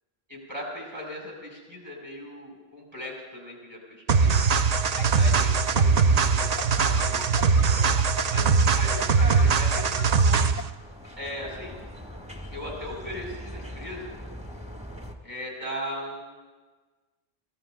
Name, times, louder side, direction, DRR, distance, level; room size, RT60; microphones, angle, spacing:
voice 1, 0.3-4.4 4.9-7.9 8.3-10.5 11.2-11.8 12.5-14.1 15.2-16.2, equal, 35° right, -3 dB, 6.1 m, -38 dB
sound 1, 4.1-10.7, right 5 dB, 50° right, 0.5 m, -21 dB
sound 2, 4.4-10.6, left 8 dB, 55° left, 0.7 m, -37 dB
sound 3, 9.7-15.1, equal, 5° right, 1.1 m, -42 dB
29.0 x 16.0 x 2.6 m, 1.3 s
omnidirectional pair, 1.1 m